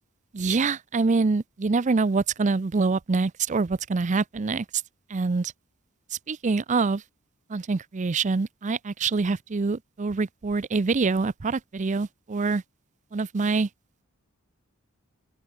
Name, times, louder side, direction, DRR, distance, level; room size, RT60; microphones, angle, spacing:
voice 1, 0.3-4.7 5.1-5.5 6.3-7.0 7.5-12.6 13.1-13.7, right 4 dB, 35° right, 0.5 m, -25 dB
head